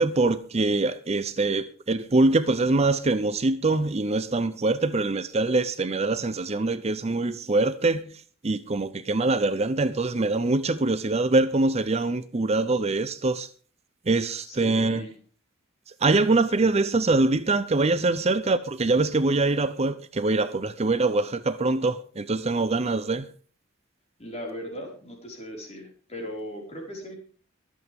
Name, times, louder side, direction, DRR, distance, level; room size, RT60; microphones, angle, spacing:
voice 1, 0.0-8.0 8.4-13.5 14.1-15.1 16.0-23.3, right 2 dB, 30° right, 0.6 m, -24 dB
voice 2, 14.4-15.2 24.2-27.2, equal, 30° left, 5.0 m, -38 dB
23.5 x 8.3 x 3.6 m
head